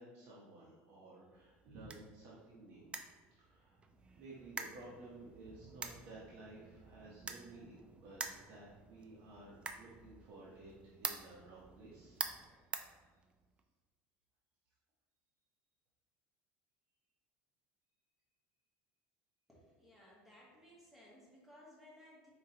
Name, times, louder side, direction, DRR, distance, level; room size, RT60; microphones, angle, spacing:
voice 1, 0.0-2.9 3.4-3.8 4.2-10.7 11.0-12.2, right 2 dB, 55° right, -7 dB, 1.0 m, -54 dB
sound 1, 1.3-13.6, right 5 dB, 25° right, 0.3 m, -48 dB
voice 2, 19.5-22.3, left 1 dB, 5° right, -5 dB, 1.5 m, -60 dB
4.9 x 3.6 x 2.9 m, 1.3 s
cardioid pair, 135°, 5 cm